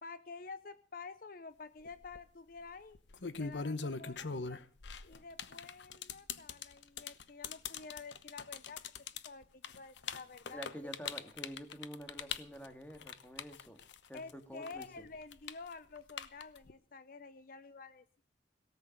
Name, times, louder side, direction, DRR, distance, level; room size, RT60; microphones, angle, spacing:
voice 1, 0.0-3.0 3.4-4.6 5.1-8.8 9.2-10.7 14.1-18.1, left 4 dB, 50° left, 13 dB, 0.6 m, -49 dB
sound 1, 1.8-2.2 2.9-14.3 14.6-16.7, left 5 dB, 85° left, 1.0 m, -41 dB
voice 2, 10.5-13.8 14.1-15.0, equal, 10° left, 6 dB, 2.0 m, -48 dB
17.5 x 8.2 x 7.8 m, 0.42 s
head